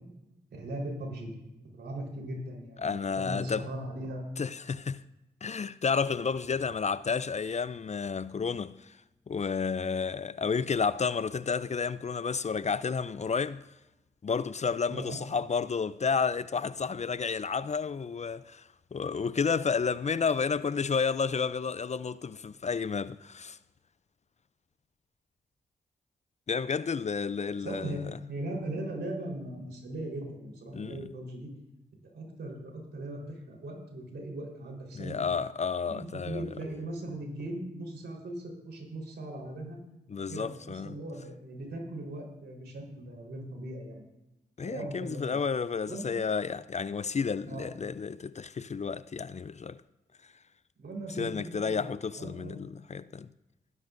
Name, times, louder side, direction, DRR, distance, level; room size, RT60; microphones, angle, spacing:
voice 1, 0.5-1.3 1.7-4.2 14.9-15.2 27.5-28.0 28.3-31.5 32.0-35.2 35.8-39.8 40.1-44.0 44.6-45.4 45.9-46.1 47.5-47.7 50.8-52.6, right 1 dB, 80° right, 4.1 m, -39 dB
voice 2, 2.8-3.6 4.4-5.0 5.4-9.0 9.3-13.6 14.2-23.6 26.5-28.0 30.7-31.0 34.9-36.4 40.1-40.9 44.6-49.8 51.1-53.3, left 5 dB, 40° left, 0.5 m, -31 dB
20.5 x 11.0 x 2.6 m
supercardioid pair, 45°, 18 cm